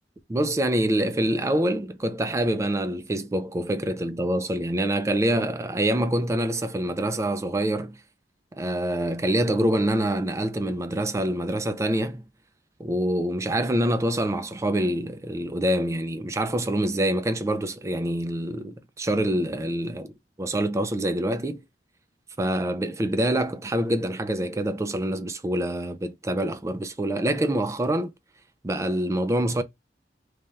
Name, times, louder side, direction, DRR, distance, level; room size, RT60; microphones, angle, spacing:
voice 1, 0.3-8.0 8.5-12.3 12.8-20.1 20.4-21.6 22.4-28.1 28.6-29.6, right 1 dB, 15° right, 0.4 m, -26 dB
3.3 x 2.2 x 3.9 m
head